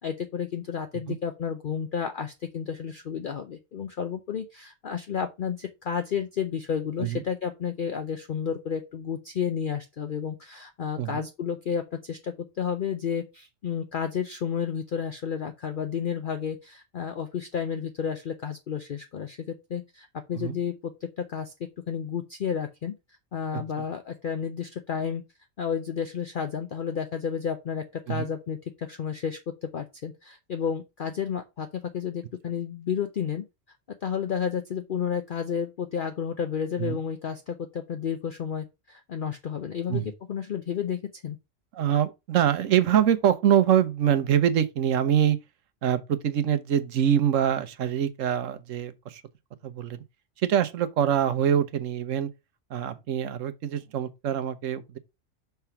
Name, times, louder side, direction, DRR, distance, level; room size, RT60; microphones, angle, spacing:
voice 1, 0.0-20.9 21.2-21.5 21.9-22.9 23.3-25.2 25.6-33.4 34.0-40.0 40.3-41.4, left 7 dB, 50° left, 0.7 m, -31 dB
voice 2, 23.5-23.8 28.1-28.3 36.8-37.0 39.9-40.1 41.7-45.4 45.8-49.2 49.6-50.0 50.4-52.3 52.7-55.0, right 9 dB, 75° right, 1.1 m, -24 dB
5.8 x 3.4 x 5.7 m
omnidirectional pair, 1.4 m